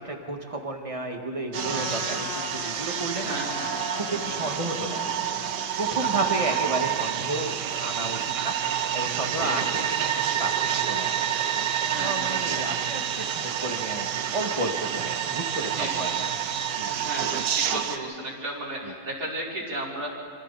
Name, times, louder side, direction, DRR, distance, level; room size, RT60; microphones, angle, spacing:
voice 1, 0.0-3.4 3.9-5.1 5.8-11.2 12.0-14.1 14.3-16.1 16.7-16.9 18.8-18.9, right 2 dB, 20° right, 3 dB, 1.8 m, -32 dB
Trumpet, 1.5-6.8, left 7 dB, 60° left, 1.2 m, -40 dB
sound 1, 1.5-18.0, right 9 dB, 75° right, 1.5 m, -28 dB
voice 2, 3.2-3.7 6.0-6.3 9.3-9.7 11.9-12.9 15.6-16.1 16.9-20.1, right 1 dB, 55° right, -4 dB, 5.0 m, -35 dB
27.0 x 27.0 x 4.2 m, 2.4 s
omnidirectional pair, 1.9 m